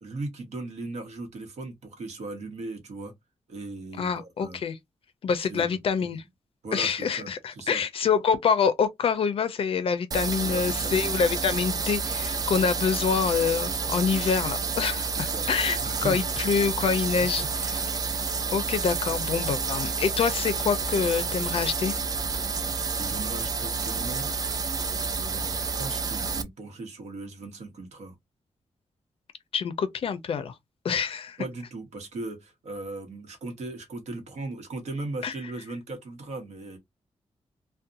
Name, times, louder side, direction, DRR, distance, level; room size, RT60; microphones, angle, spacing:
voice 1, 0.0-3.1 3.5-4.6 5.4-5.8 6.6-7.3 7.6-7.8 10.4-11.1 15.2-15.5 15.8-16.3 17.2-17.3 23.0-24.3 25.2-28.1 31.4-36.8, right 2 dB, 75° right, 0.9 m, -38 dB
voice 2, 4.0-4.8 5.2-6.2 6.7-17.9 18.5-21.9 29.5-30.5 30.8-31.4 35.2-35.3, left 6 dB, 55° left, 0.4 m, -26 dB
sound 1, 10.1-26.4, right 5 dB, 35° right, 0.3 m, -29 dB
2.7 x 2.1 x 2.4 m
wide cardioid pair, 165°, 12 cm